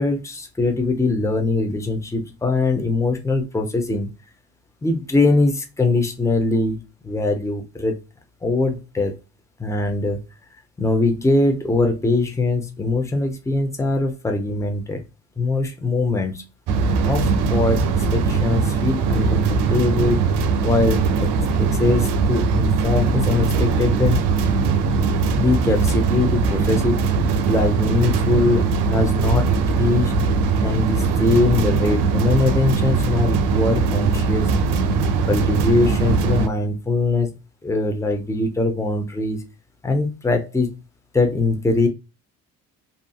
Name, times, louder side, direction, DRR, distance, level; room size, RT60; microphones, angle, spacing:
voice 1, 0.0-4.1 4.8-6.8 7.0-8.0 8.4-9.1 9.6-10.2 10.8-15.0 15.4-16.4 17.0-20.3 20.6-21.3 21.6-24.3 25.4-27.0 27.5-30.1 30.6-34.5 35.3-37.3 37.6-39.4 39.8-40.7 41.1-41.9, left 3 dB, 5° left, 4 dB, 0.7 m, -22 dB
sound 1, 16.7-36.5, right 4 dB, 75° right, 0.6 m, -20 dB
2.6 x 2.6 x 2.3 m, 0.27 s
supercardioid pair, 60°, 41 cm